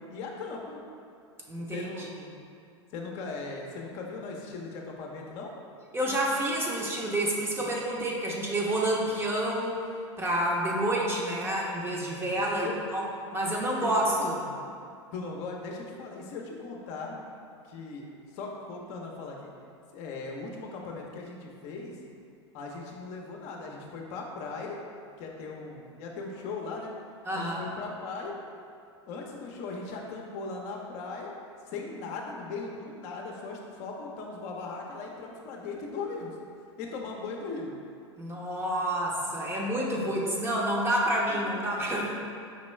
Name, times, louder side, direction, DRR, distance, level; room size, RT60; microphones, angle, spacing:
voice 1, 0.1-0.8 1.7-2.1 2.9-5.5 7.6-7.7 8.2-8.4 9.0-9.2 12.4-12.8 13.8-14.3 15.1-17.2 17.6-19.5 19.9-22.0 22.5-24.8 25.2-26.9 27.3-28.4 29.1-31.3 31.6-36.4 36.8-37.7 41.3-41.6, left 4 dB, 50° left, 0 dB, 0.7 m, -38 dB
voice 2, 1.5-1.9 5.9-9.7 10.2-13.1 13.3-14.4 27.3-27.6 38.2-42.1, right 1 dB, 15° right, -3 dB, 0.8 m, -28 dB
5.2 x 3.0 x 3.2 m, 2.5 s
hypercardioid pair, 95°, 15 cm